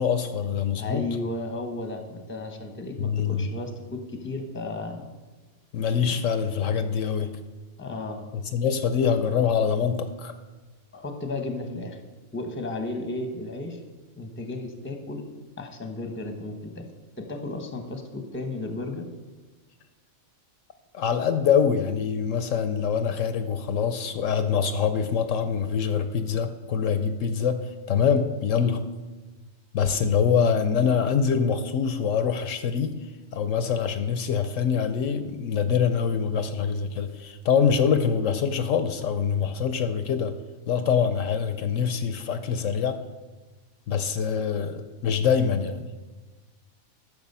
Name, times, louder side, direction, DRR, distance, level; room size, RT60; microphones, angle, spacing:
voice 1, 0.0-1.0 3.0-3.5 5.7-7.3 8.5-10.3 20.9-28.8 29.7-33.0 33.3-40.4 40.7-43.0 43.9-45.9, left 7 dB, 70° left, 9 dB, 0.9 m, -24 dB
voice 2, 0.8-5.1 6.1-6.2 7.8-8.2 10.9-12.0 12.3-13.8 14.2-15.2 15.6-16.8 17.2-19.0, left 2 dB, 10° left, 4 dB, 0.8 m, -34 dB
11.0 x 6.7 x 5.4 m, 1.3 s
omnidirectional pair, 1.4 m